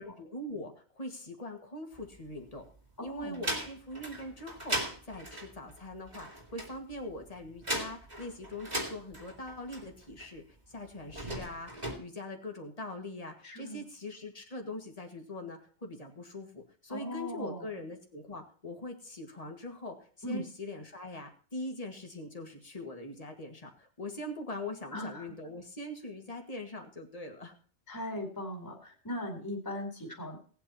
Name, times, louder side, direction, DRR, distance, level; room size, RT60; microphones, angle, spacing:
voice 1, 0.0-2.7 3.0-4.8 5.0-27.6, left 1 dB, 35° left, 3 dB, 2.1 m, -42 dB
sound 1, 1.9-2.8 3.2-10.3 11.0-11.9, right 1 dB, 40° right, 2.9 m, -38 dB
voice 2, 3.0-3.4 13.4-13.8 16.9-17.7 20.2-20.4 24.9-25.3 27.9-30.4, left 1 dB, 20° left, 1 dB, 2.5 m, -38 dB
18.0 x 8.6 x 4.3 m, 0.42 s
omnidirectional pair, 1.1 m